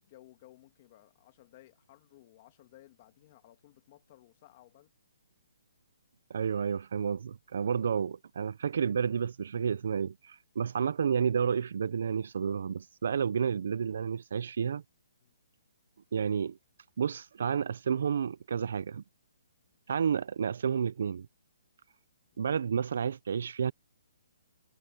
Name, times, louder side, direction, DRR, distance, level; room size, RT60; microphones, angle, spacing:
voice 1, 0.0-4.9 15.2-15.4 22.3-22.5, left 15 dB, 25° left, 2.2 m, -58 dB
voice 2, 6.3-14.8 16.1-16.6 17.0-19.0 19.9-21.3 22.4-23.7, right 7 dB, 45° right, 0.4 m, -30 dB
hypercardioid pair, 180°, 0 cm